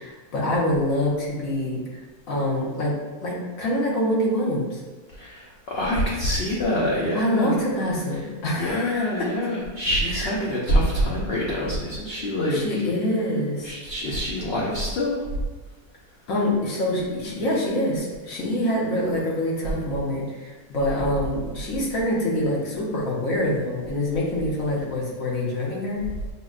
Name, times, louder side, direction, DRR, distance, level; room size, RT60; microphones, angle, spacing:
voice 1, 0.0-2.0 2.3-2.9 3.2-4.8 7.1-9.3 10.1-10.3 12.5-13.7 16.3-26.1, left 1 dB, 60° left, -4 dB, 1.2 m, -25 dB
voice 2, 5.2-7.5 8.6-12.8 13.6-15.3, equal, 85° left, -4 dB, 0.5 m, -25 dB
6.0 x 2.1 x 2.4 m, 1.3 s
omnidirectional pair, 1.7 m